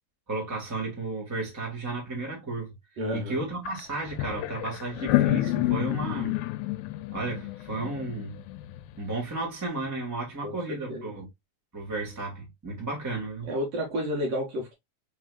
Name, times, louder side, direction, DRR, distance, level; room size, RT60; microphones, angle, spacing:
voice 1, 0.3-2.7 3.1-6.3 7.1-8.4 9.0-11.3 11.7-13.5, right 3 dB, 15° right, 0.5 m, -33 dB
voice 2, 3.0-3.4 10.4-11.1 13.4-14.7, equal, 55° right, 1.9 m, -31 dB
sound 1, 3.7-9.0, left 16 dB, 85° left, 2.4 m, -29 dB
5.3 x 3.5 x 2.4 m
omnidirectional pair, 4.2 m